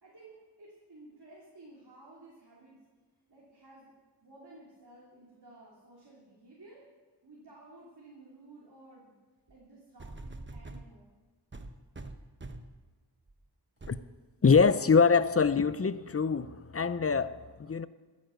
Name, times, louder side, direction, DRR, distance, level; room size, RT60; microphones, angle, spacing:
voice 1, 0.0-2.8 3.3-3.9 4.2-6.9 7.2-9.1 9.5-11.1, right 2 dB, 65° right, -5 dB, 3.1 m, -54 dB
sound 1, 9.5-9.6 10.0-10.9 11.5-12.8 13.3-13.4 13.8-14.0 14.4-14.7 15.4-15.5, right 2 dB, 25° right, 1.0 m, -44 dB
voice 2, 14.4-17.9, left 5 dB, 35° left, 15 dB, 0.5 m, -24 dB
14.5 x 9.4 x 6.4 m, 1.3 s
wide cardioid pair, 55°, 42 cm